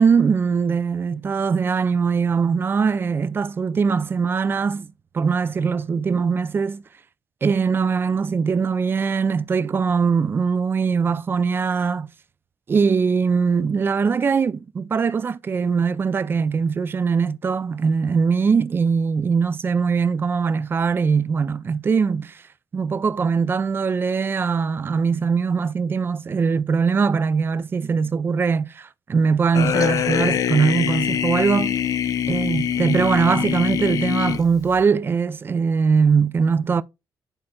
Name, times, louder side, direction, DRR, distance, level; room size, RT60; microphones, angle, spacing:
voice 1, 0.0-6.8 7.4-12.1 12.7-22.4 22.7-31.8 32.3-36.8, right 5 dB, 30° right, 0.4 m, -21 dB
sound 1, 29.5-34.8, left 9 dB, 50° left, 0.5 m, -23 dB
11.0 x 4.2 x 2.3 m
cardioid pair, 155°, 8 cm